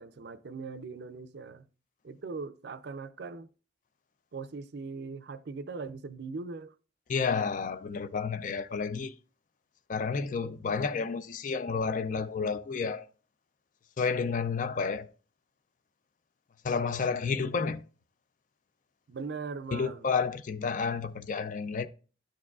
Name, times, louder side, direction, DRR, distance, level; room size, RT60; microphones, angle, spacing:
voice 1, 0.0-1.7 2.0-3.5 4.3-6.7 19.1-20.1, right 4 dB, 60° right, 0.5 m, -40 dB
voice 2, 7.1-9.1 9.9-13.0 14.0-15.1 16.6-17.8 19.7-21.9, left 5 dB, 45° left, 0.4 m, -30 dB
11.5 x 4.7 x 2.3 m
head